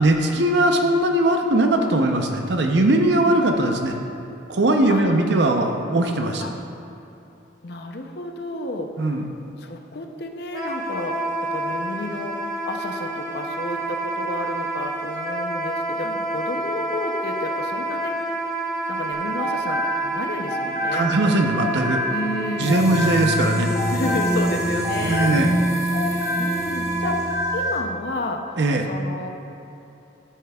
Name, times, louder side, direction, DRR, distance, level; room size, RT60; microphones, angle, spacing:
voice 1, 0.0-3.9 4.5-6.4 9.0-9.3 16.1-16.2 20.9-22.0 22.6-23.7 25.0-25.6 28.6-28.8, right 1 dB, 65° right, 4 dB, 0.7 m, -20 dB
voice 2, 4.9-5.3 6.4-6.5 7.6-9.3 9.6-11.2 11.5-12.4 12.6-18.1 18.9-21.1 22.1-23.2 23.9-25.4 26.0-27.2 27.5-28.4 28.9-29.3, left 2 dB, 55° left, 4 dB, 0.6 m, -31 dB
Wind instrument woodwind instrument, 10.5-27.3, right 2 dB, 20° right, 1.0 m, -29 dB
sound 1, 19.1-22.4 22.7-26.7 27.0-27.8, left 1 dB, 35° left, 1.0 m, -28 dB
sound 2, 22.6-27.8, equal, 15° left, 0.6 m, -26 dB
10.0 x 8.3 x 2.3 m, 2.9 s
head